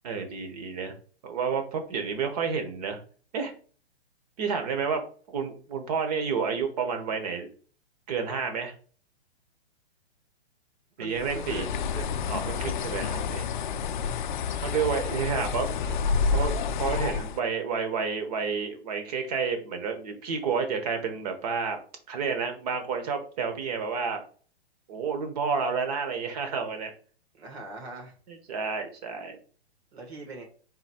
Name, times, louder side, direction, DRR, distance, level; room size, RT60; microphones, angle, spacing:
voice 1, 0.0-0.9 1.2-3.0 3.3-3.5 4.4-5.0 5.3-7.5 8.1-8.7 11.0-11.7 12.3-13.5 14.6-15.7 16.3-16.5 16.8-21.8 22.1-24.2 24.9-26.9 28.3-29.4, right 5 dB, 40° right, 6 dB, 1.2 m, -30 dB
voice 2, 11.0-12.2 12.4-13.1 15.4-15.6 15.8-16.5 27.4-28.1 29.9-30.4, right 3 dB, 70° right, 2 dB, 2.2 m, -42 dB
Bird, 11.2-17.4, left 5 dB, 50° left, 0.5 m, -29 dB
4.0 x 2.8 x 4.3 m, 0.42 s
hypercardioid pair, 155°, 32 cm